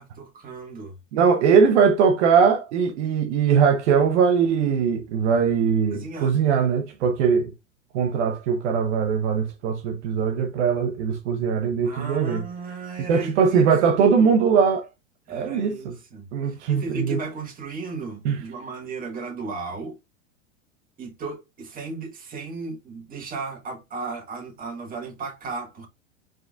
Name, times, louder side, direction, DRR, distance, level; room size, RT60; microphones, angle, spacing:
voice 1, 0.0-0.9 5.9-6.4 11.8-13.7 14.0-14.3 15.3-20.0 21.0-25.9, right 4 dB, 20° right, 1.7 m, -35 dB
voice 2, 1.1-7.5 7.9-12.4 13.1-14.9 15.3-15.9 16.3-17.2 18.2-18.4, right 6 dB, 60° right, 0.8 m, -21 dB
4.7 x 3.6 x 2.5 m
supercardioid pair, 130°, 40 cm